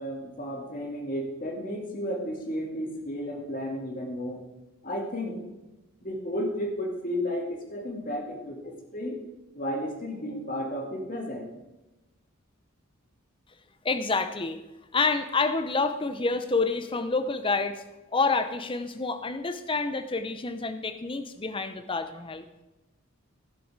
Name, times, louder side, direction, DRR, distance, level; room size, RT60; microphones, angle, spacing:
voice 1, 0.0-4.4 4.8-5.5 6.0-9.2 9.5-11.5, equal, 40° left, 2 dB, 2.1 m, -33 dB
voice 2, 13.8-14.6 14.9-17.8 18.1-22.4, left 3 dB, 25° left, 10 dB, 0.6 m, -28 dB
16.0 x 6.9 x 4.8 m, 1.0 s
head